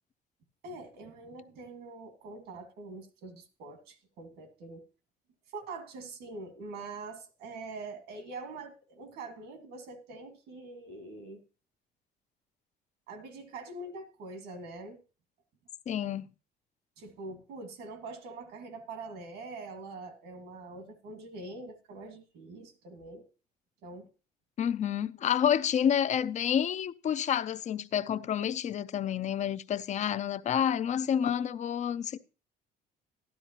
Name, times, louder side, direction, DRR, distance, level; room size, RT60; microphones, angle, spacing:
voice 1, 0.6-4.8 5.5-11.4 13.1-15.0 17.0-23.3 23.8-24.1, right 3 dB, 85° right, 1.9 m, -44 dB
voice 2, 15.9-16.3 24.6-32.2, left 9 dB, 45° left, 0.5 m, -29 dB
12.5 x 11.5 x 2.9 m
cardioid pair, 110°, 17 cm